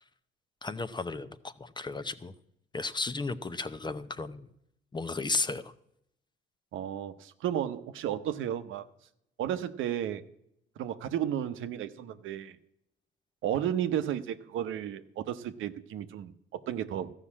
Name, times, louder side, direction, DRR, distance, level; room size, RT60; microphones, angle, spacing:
voice 1, 0.6-2.3 2.7-4.5 4.9-5.7, left 3 dB, 20° left, 11 dB, 0.7 m, -34 dB
voice 2, 6.7-8.8 9.4-10.2 10.8-12.6 13.4-17.1, right 10 dB, 80° right, 10 dB, 0.8 m, -33 dB
14.0 x 5.7 x 8.4 m, 0.77 s
cardioid pair, 90°, 20 cm